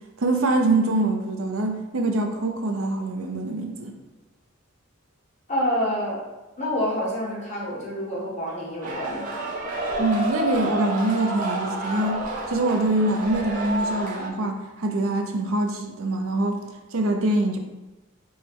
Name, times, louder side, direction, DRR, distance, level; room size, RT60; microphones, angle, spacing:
voice 1, 0.2-3.9 10.0-12.2 12.5-16.6 16.9-17.6, right 2 dB, 80° right, 4 dB, 0.6 m, -24 dB
voice 2, 5.5-6.2 6.6-9.4, equal, 35° left, -5 dB, 1.3 m, -27 dB
sound 1, 8.8-14.3, right 1 dB, 40° right, 0.7 m, -29 dB
4.7 x 2.2 x 4.5 m, 1.1 s
head